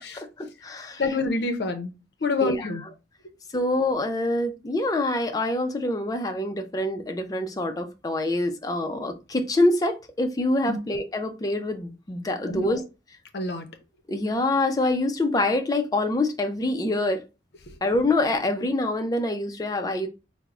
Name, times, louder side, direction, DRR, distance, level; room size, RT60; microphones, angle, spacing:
voice 1, 0.1-1.0 2.4-2.7 3.5-12.8 14.1-17.2 17.8-20.1, left 2 dB, 20° left, 0.4 m, -25 dB
voice 2, 1.0-1.9 2.2-2.8 10.7-10.8 12.5-12.8 13.3-13.7 17.7-17.8, left 3 dB, 60° left, 0.6 m, -27 dB
3.5 x 2.0 x 3.5 m
head